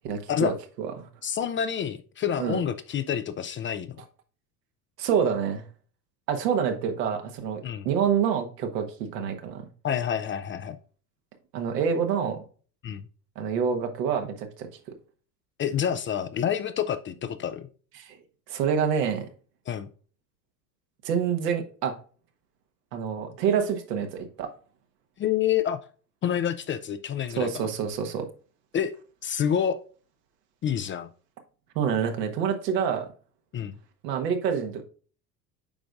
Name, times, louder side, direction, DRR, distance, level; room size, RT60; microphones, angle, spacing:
voice 1, 0.0-1.1 2.4-2.6 5.0-5.6 6.3-9.7 11.5-12.4 13.3-14.7 18.0-18.2 18.5-19.3 21.0-21.9 22.9-24.5 27.3-28.3 31.7-33.1 34.0-34.8, right 7 dB, 75° right, 5 dB, 1.4 m, -27 dB
voice 2, 1.2-4.0 7.6-7.9 9.8-10.8 12.8-13.1 15.6-17.7 19.7-19.9 25.2-25.8 26.2-27.7 28.7-28.9 29.2-29.8 30.6-31.1 33.5-33.8, left 9 dB, 25° left, 11 dB, 0.4 m, -28 dB
8.8 x 5.1 x 2.4 m, 0.40 s
hypercardioid pair, 75°, 49 cm